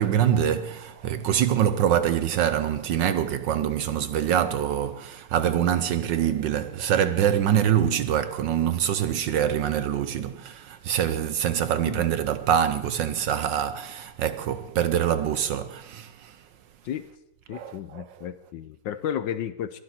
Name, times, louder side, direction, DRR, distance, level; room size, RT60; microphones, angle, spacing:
voice 1, 0.0-16.4 17.5-18.3, right 9 dB, 70° right, 1.2 m, -25 dB
voice 2, 17.5-19.8, left 9 dB, 70° left, 1.2 m, -33 dB
22.0 x 12.0 x 4.3 m
omnidirectional pair, 2.4 m